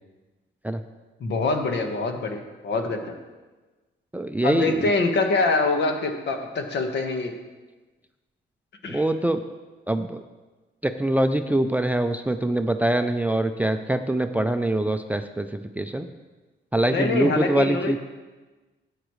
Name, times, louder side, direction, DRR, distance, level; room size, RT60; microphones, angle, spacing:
voice 1, 1.2-3.0 4.4-7.3 8.8-9.0 16.9-18.0, left 3 dB, 60° left, 4 dB, 1.4 m, -24 dB
voice 2, 4.1-4.9 8.8-9.4 9.9-10.2 10.8-16.1 16.7-18.0, right 1 dB, 10° right, 9 dB, 0.4 m, -24 dB
13.0 x 9.0 x 3.2 m, 1.2 s
cardioid pair, 90°, 20 cm